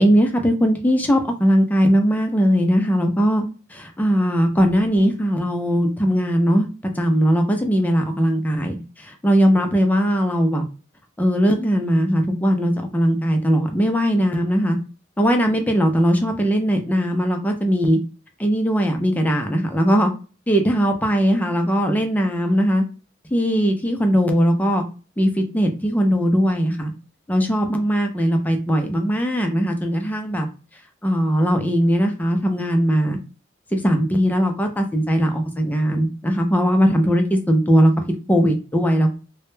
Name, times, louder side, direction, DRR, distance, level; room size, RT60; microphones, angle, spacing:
voice 1, 0.0-3.4 3.7-6.7 7.0-10.6 11.2-14.8 15.2-18.0 18.4-20.1 20.5-22.8 23.3-24.8 25.2-26.9 27.3-30.5 31.0-33.2 33.7-37.9 38.3-39.2, equal, 10° left, 4 dB, 0.3 m, -19 dB
2.1 x 2.0 x 3.0 m, 0.35 s
head